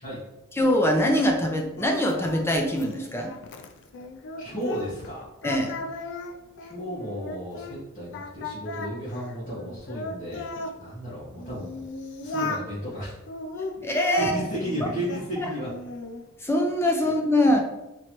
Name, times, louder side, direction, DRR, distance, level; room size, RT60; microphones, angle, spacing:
Singing, 0.6-5.1 5.4-7.8 8.1-10.8 11.4-12.7 13.3-15.3 15.7-16.2, left 2 dB, 60° left, 0.4 m, -36 dB
voice 1, 0.6-3.3 5.4-5.8 13.8-14.3 16.4-17.6, left 1 dB, 10° left, 2 dB, 0.5 m, -23 dB
voice 2, 4.4-5.3 6.6-10.4 10.7-11.9 12.2-13.2 13.8-13.9 14.1-15.7, equal, 40° left, -10 dB, 1.3 m, -33 dB
4.2 x 3.1 x 3.0 m, 0.95 s
head